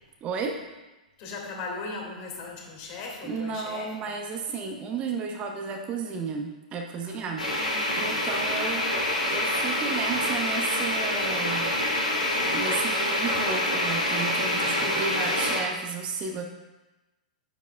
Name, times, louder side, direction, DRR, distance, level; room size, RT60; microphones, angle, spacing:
voice 1, 0.2-0.6 2.8-2.9 3.2-8.9 9.3-11.8 12.4-16.4, right 5 dB, 30° right, 3 dB, 0.8 m, -33 dB
voice 2, 1.2-4.1 7.1-8.7 14.5-15.1, left 3 dB, 40° left, -1 dB, 2.2 m, -40 dB
sound 1, 7.4-15.6, left 1 dB, 80° left, 2.7 m, -26 dB
9.6 x 8.4 x 2.3 m, 1.1 s
figure-of-eight pair, 100°, 4 cm